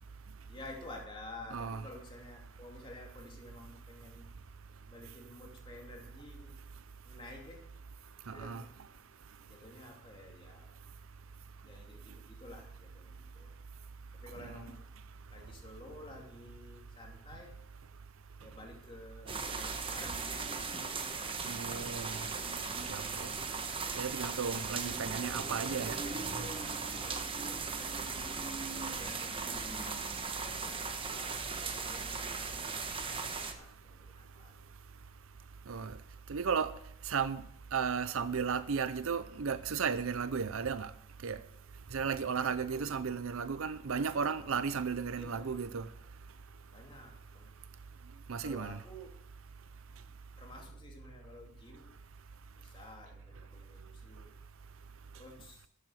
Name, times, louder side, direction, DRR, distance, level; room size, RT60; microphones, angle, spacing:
voice 1, 0.0-4.3 4.9-6.6 7.0-7.6 8.2-8.7 9.4-10.8 11.6-13.6 14.1-14.8 15.3-17.6 18.4-20.3 23.5-23.8 26.4-29.6 30.3-34.7 42.7-43.3 43.9-44.5 45.1-45.6 46.7-47.5 48.4-49.1 50.4-52.0 52.5-54.3 55.1-55.7, left 1 dB, 25° left, 2.6 m, -52 dB
voice 2, 1.5-1.8 8.3-8.6 21.4-22.3 22.9-23.3 23.9-26.0 35.7-35.9 36.3-36.7 37.1-37.4 37.7-40.9 41.2-41.4 41.9-45.9 48.3-48.8, right 6 dB, 70° right, 0.6 m, -34 dB
sound 1, 19.3-33.5, right 4 dB, 25° right, 1.1 m, -38 dB
13.0 x 7.7 x 7.6 m
head